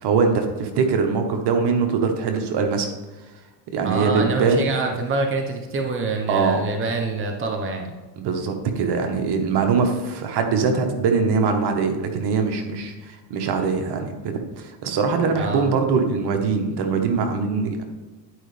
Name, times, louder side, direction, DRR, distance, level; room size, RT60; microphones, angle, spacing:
voice 1, 0.0-2.9 3.7-4.7 6.3-6.7 8.2-17.8, right 5 dB, 55° right, 5 dB, 1.4 m, -22 dB
voice 2, 3.8-7.9 15.3-15.7, right 3 dB, 25° right, 3 dB, 1.1 m, -26 dB
11.0 x 5.2 x 3.4 m, 1.2 s
supercardioid pair, 90°, 47 cm